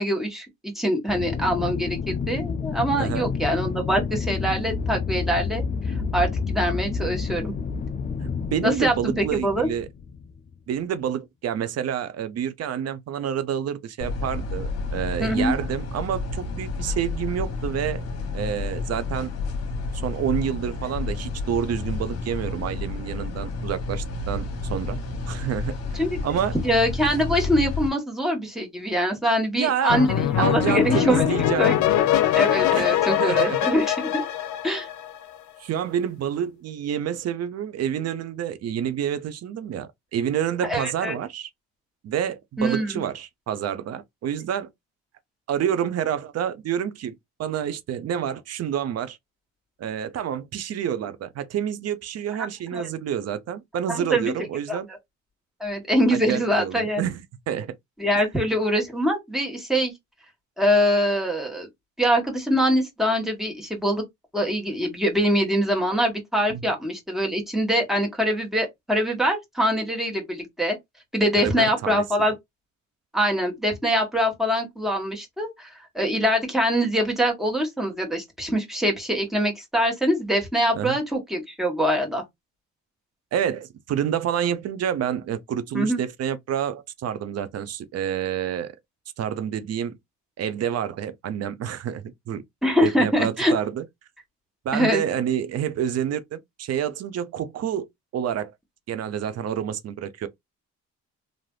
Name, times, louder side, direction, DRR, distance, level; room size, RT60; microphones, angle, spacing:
voice 1, 0.0-7.5 8.6-9.7 15.2-15.5 25.9-26.2 26.6-31.3 31.6-31.7 32.3-34.2 34.6-34.9 40.6-41.2 42.6-43.0 52.7-52.9 53.9-54.3 54.7-54.8 55.6-57.0 58.0-59.9 60.6-61.7 62.0-64.0 64.3-70.7 71.1-72.3 73.1-75.7 75.9-82.2 85.7-86.0 92.6-93.5 94.7-95.0, equal, ahead, 1.4 m, -24 dB
Aircraft, 1.1-10.5, left 5 dB, 30° left, 0.3 m, -29 dB
voice 2, 8.2-9.9 10.7-18.0 18.3-19.3 19.9-25.0 25.3-26.6 29.6-30.1 30.4-31.8 32.7-33.6 35.6-41.5 42.0-44.7 45.5-49.2 49.8-54.9 56.1-57.8 66.5-66.6 71.4-72.0 80.7-81.0 83.3-88.7 89.2-90.0 90.4-92.4 92.8-93.8 94.6-97.9 98.1-98.5 98.9-100.3, right 9 dB, 55° right, 0.6 m, -28 dB
sound 1, 14.0-27.9, left 3 dB, 55° left, 1.1 m, -30 dB
sound 2, 29.9-35.4, left 11 dB, 75° left, 0.7 m, -22 dB
3.2 x 2.5 x 2.3 m
cardioid pair, 90°, 30 cm